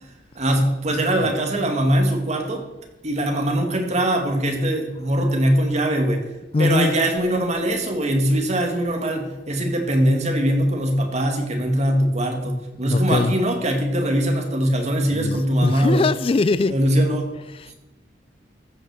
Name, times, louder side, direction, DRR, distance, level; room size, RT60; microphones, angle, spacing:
voice 1, 0.4-2.6 3.0-6.2 6.6-16.0 16.7-17.4, right 1 dB, 40° right, 3 dB, 2.2 m, -21 dB
voice 2, 6.5-6.9 12.9-13.3 15.1-16.8 17.5-17.7, left 3 dB, 30° left, 15 dB, 0.3 m, -21 dB
14.5 x 6.3 x 6.7 m, 1.1 s
head